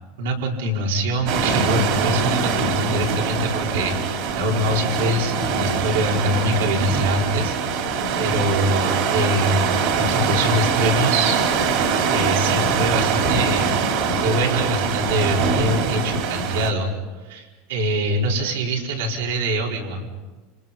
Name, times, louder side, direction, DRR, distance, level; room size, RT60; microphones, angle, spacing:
voice 1, 0.2-7.8 8.2-11.4 12.1-16.9 17.2-20.1, equal, 85° right, -1 dB, 4.5 m, -24 dB
sound 1, 1.3-16.7, right 5 dB, 55° right, 3.6 m, -23 dB
30.0 x 28.0 x 5.6 m, 1.3 s
supercardioid pair, 155°, 0 cm